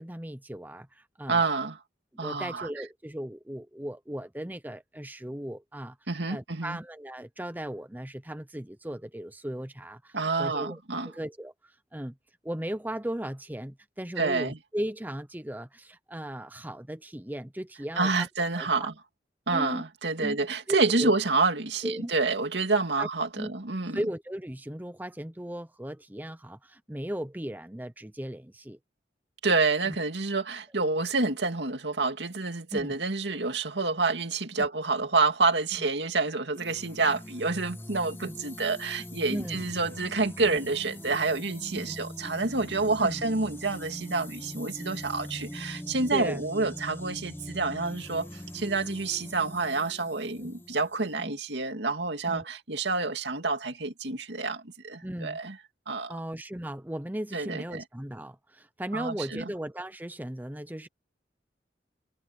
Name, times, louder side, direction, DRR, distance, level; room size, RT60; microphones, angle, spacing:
voice 1, 0.0-1.5 2.2-6.0 6.3-10.8 11.1-12.1 12.4-18.3 18.5-18.9 19.5-19.9 20.2-21.1 21.8-22.1 23.0-23.1 23.4-23.5 23.9-28.8 29.8-30.0 32.7-33.0 34.6-34.7 35.8-35.9 38.3-38.4 39.3-39.6 40.4-40.6 41.7-41.9 43.0-43.2 46.1-46.4 50.4-50.5 51.2-51.3 52.2-52.4 55.0-55.4 56.1-60.9, right 1 dB, 10° right, 0.8 m, -37 dB
voice 2, 1.3-1.8 2.2-2.7 6.1-6.8 10.1-11.1 14.2-14.6 18.0-18.9 19.5-24.0 29.4-55.6 55.9-56.2 57.3-57.8 58.9-59.4, right 3 dB, 80° right, 2.3 m, -28 dB
sound 1, 36.5-51.2, left 1 dB, 10° left, 1.1 m, -42 dB
head